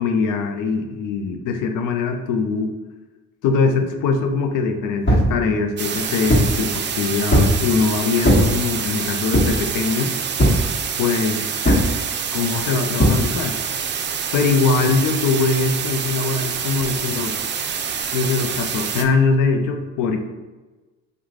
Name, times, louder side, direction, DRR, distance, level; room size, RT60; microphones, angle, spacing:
voice 1, 0.0-2.7 3.4-10.1 11.0-11.9 12.3-13.6 14.3-17.4 18.1-20.2, left 4 dB, 90° left, 5 dB, 0.5 m, -22 dB
sound 1, 5.1-5.3 5.9-6.6 7.3-7.6 8.2-8.5 9.3-9.7 10.4-10.7 11.6-11.9 13.0-13.2, equal, 40° left, 1.3 m, -17 dB
sound 2, 5.8-19.0, right 7 dB, 40° right, 0.4 m, -26 dB
3.2 x 2.2 x 3.6 m, 1.2 s
cardioid pair, 90°, 30 cm